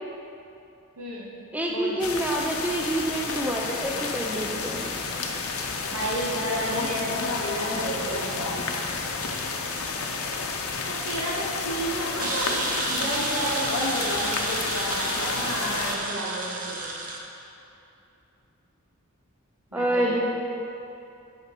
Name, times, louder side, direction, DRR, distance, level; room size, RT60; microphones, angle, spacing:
voice 1, 1.0-1.3 1.7-2.0 5.9-8.6 10.9-13.7 15.0-16.9 19.7-20.2, right 1 dB, 75° right, -5 dB, 1.8 m, -32 dB
voice 2, 1.5-4.9 7.7-7.8 19.7-20.2, right 1 dB, 5° right, -1 dB, 0.5 m, -27 dB
sound 1, 2.0-16.0, left 4 dB, 80° left, 0.7 m, -30 dB
sound 2, 12.2-17.2, right 2 dB, 40° right, 0.8 m, -31 dB
8.5 x 5.1 x 5.2 m, 2.7 s
head